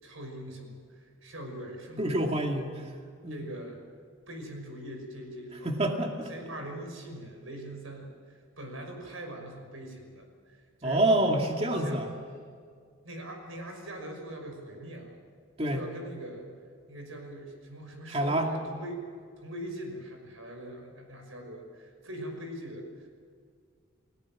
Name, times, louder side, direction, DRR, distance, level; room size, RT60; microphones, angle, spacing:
voice 1, 0.0-2.3 3.3-3.8 4.3-5.8 6.2-11.0 11.5-12.1 13.0-15.2 15.7-16.4 16.9-19.0 19.4-23.1, right 1 dB, 85° right, 4 dB, 6.0 m, -42 dB
voice 2, 2.0-2.9 3.2-3.4 5.6-6.3 10.8-12.1 15.6-15.8 18.1-18.5, right 1 dB, 30° right, 2 dB, 2.3 m, -27 dB
30.0 x 17.5 x 7.5 m, 2.1 s
head